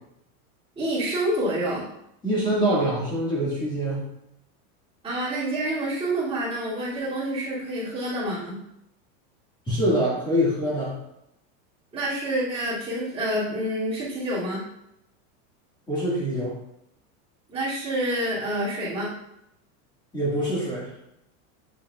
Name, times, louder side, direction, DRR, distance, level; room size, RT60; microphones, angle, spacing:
voice 1, 0.8-1.9 5.0-8.6 11.9-14.7 17.5-19.2, right 1 dB, 15° right, -10 dB, 2.6 m, -28 dB
voice 2, 2.2-4.1 9.7-11.0 15.9-16.6 20.1-20.9, equal, 10° left, -6 dB, 1.9 m, -24 dB
7.8 x 6.9 x 2.4 m, 0.81 s
supercardioid pair, 180°, 41 cm